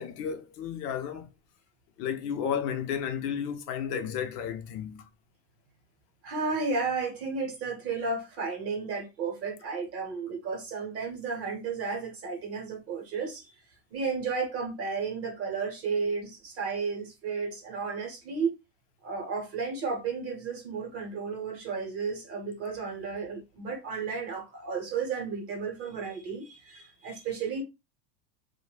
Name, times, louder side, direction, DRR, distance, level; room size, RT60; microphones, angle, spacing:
voice 1, 0.0-1.3 2.0-5.1, left 8 dB, 70° left, 0.7 m, -33 dB
voice 2, 6.2-13.5 13.9-18.6 19.0-27.6, right 4 dB, 30° right, 0.8 m, -33 dB
2.6 x 2.2 x 3.2 m
supercardioid pair, 160°, 49 cm